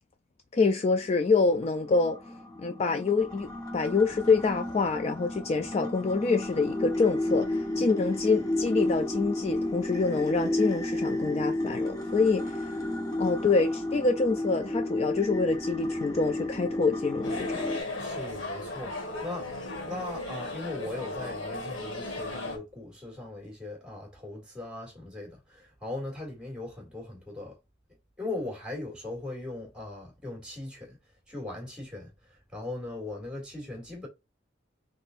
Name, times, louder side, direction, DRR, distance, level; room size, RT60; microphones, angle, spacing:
voice 1, 0.5-2.2 2.6-12.8 13.2-17.7, left 4 dB, 35° left, 0.3 m, -26 dB
sound 1, 1.1-17.8, left 1 dB, 20° left, 1.0 m, -32 dB
sound 2, 17.2-22.6, left 2 dB, 85° left, 1.5 m, -36 dB
voice 2, 18.0-19.5 19.8-27.6 28.2-31.0 31.3-34.1, left 2 dB, 5° right, 2.1 m, -39 dB
4.2 x 3.7 x 2.4 m
head